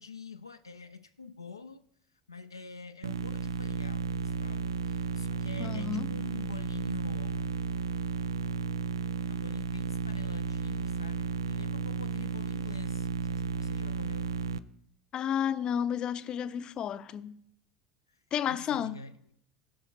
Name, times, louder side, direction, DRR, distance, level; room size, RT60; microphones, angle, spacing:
voice 1, 0.0-1.8 2.3-7.6 9.3-14.3 18.1-19.2, left 4 dB, 85° left, 0.4 m, -46 dB
sound 1, 3.0-14.6, right 5 dB, 80° right, 0.4 m, -33 dB
voice 2, 5.6-6.1 15.1-17.4 18.3-19.0, left 9 dB, 40° left, 0.6 m, -32 dB
16.5 x 5.7 x 4.2 m
figure-of-eight pair, 70°, 2 cm